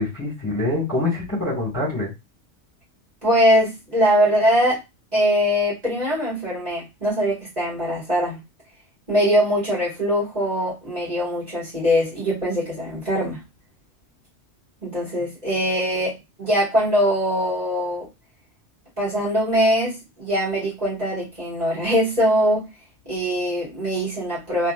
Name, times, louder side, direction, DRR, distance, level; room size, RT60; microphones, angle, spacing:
voice 1, 0.0-2.1, left 2 dB, 15° left, 2.0 m, -25 dB
voice 2, 3.2-4.8 5.1-8.4 9.1-13.4 14.8-18.1 19.0-22.7 23.1-24.7, equal, 35° right, 2.2 m, -22 dB
3.2 x 3.0 x 2.5 m
omnidirectional pair, 1.3 m